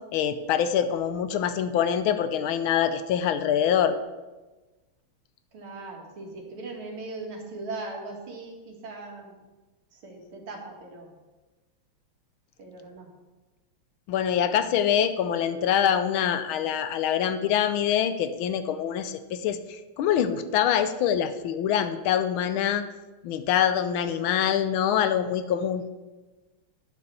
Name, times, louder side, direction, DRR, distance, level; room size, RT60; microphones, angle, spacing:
voice 1, 0.1-3.9 14.1-22.8 23.2-25.8, left 9 dB, 80° left, 11 dB, 1.4 m, -25 dB
voice 2, 5.5-9.5 9.9-11.1 12.6-13.1, right 3 dB, 75° right, 0 dB, 2.6 m, -39 dB
10.5 x 5.4 x 6.8 m, 1.2 s
omnidirectional pair, 2.4 m